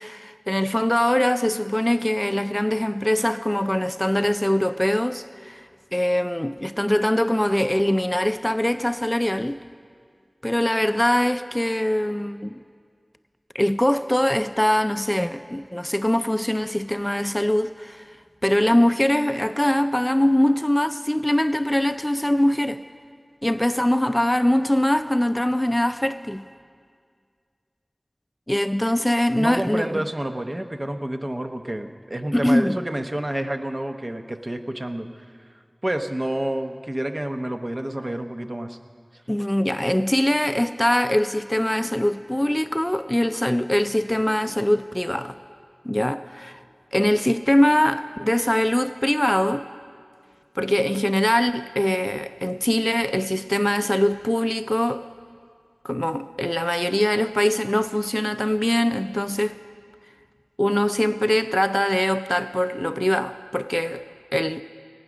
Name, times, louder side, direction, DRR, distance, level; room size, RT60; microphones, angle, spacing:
voice 1, 0.0-9.6 10.4-12.6 13.5-18.1 18.4-22.8 23.4-26.4 28.5-30.0 32.3-32.8 39.3-45.4 45.8-46.6 46.9-49.7 50.6-55.0 55.8-59.6 60.6-64.0 64.3-64.6, left 1 dB, 15° left, 11 dB, 0.4 m, -22 dB
voice 2, 29.4-35.1 35.8-38.8, right 1 dB, 45° right, 6 dB, 0.8 m, -29 dB
19.0 x 9.5 x 6.2 m, 2.1 s
wide cardioid pair, 50°, 0 cm